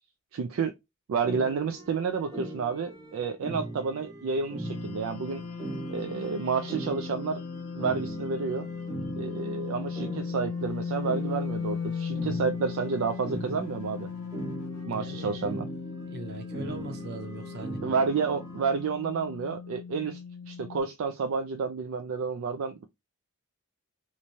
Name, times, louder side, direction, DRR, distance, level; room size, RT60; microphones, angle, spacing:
voice 1, 0.3-0.7 1.1-5.4 5.9-7.4 7.7-8.7 9.1-14.1 14.9-15.7 17.8-20.2 20.5-22.9, right 5 dB, 65° right, 0.3 m, -30 dB
sound 1, 1.2-18.7, right 2 dB, 15° right, 0.8 m, -40 dB
sound 2, 4.6-20.8, left 6 dB, 70° left, 0.3 m, -37 dB
voice 2, 14.9-15.4 16.1-17.8, right 1 dB, 45° right, 0.7 m, -40 dB
3.1 x 2.2 x 2.6 m
head